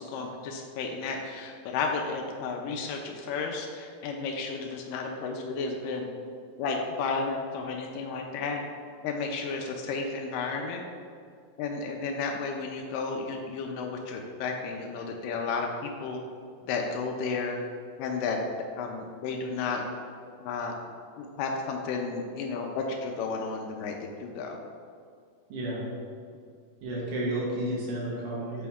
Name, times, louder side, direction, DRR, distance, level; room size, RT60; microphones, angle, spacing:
voice 1, 0.0-6.1 6.6-8.6 9.0-10.8 11.6-16.2 16.6-17.6 18.0-18.4 18.8-19.8 20.4-20.7 21.2-24.6, left 4 dB, 85° left, 2 dB, 2.2 m, -32 dB
voice 2, 25.5-25.8 26.8-28.7, right 1 dB, 75° right, -4 dB, 2.9 m, -31 dB
8.4 x 4.2 x 3.5 m, 2.2 s
omnidirectional pair, 3.7 m